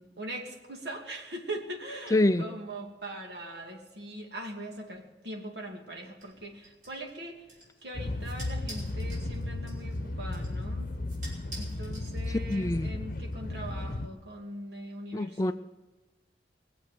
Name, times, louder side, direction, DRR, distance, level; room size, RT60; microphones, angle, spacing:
voice 1, 0.0-7.4 7.8-10.9 11.6-15.5, right 1 dB, 70° right, 2.6 m, -41 dB
voice 2, 2.1-2.4 12.3-12.9 15.1-15.5, left 1 dB, 20° left, 0.4 m, -26 dB
sound 1, 6.2-12.7, right 2 dB, 45° right, 5.5 m, -50 dB
sound 2, 7.9-14.1, left 2 dB, 50° left, 0.9 m, -35 dB
21.5 x 8.0 x 7.7 m
head